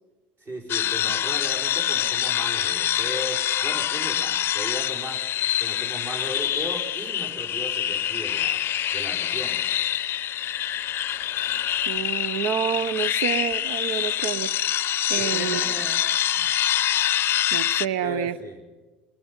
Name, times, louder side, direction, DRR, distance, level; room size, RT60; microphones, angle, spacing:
voice 1, 0.4-5.2 5.6-8.6 8.9-9.7 15.1-16.0 16.3-16.5 18.0-18.6, equal, 40° right, 1 dB, 5.2 m, -36 dB
sound 1, 0.7-17.9, left 11 dB, 45° left, 0.6 m, -25 dB
voice 2, 11.9-14.5 15.1-15.6 17.5-18.4, right 9 dB, 65° right, 19 dB, 0.8 m, -28 dB
28.0 x 21.0 x 5.5 m, 1.3 s
hypercardioid pair, 70°, 6 cm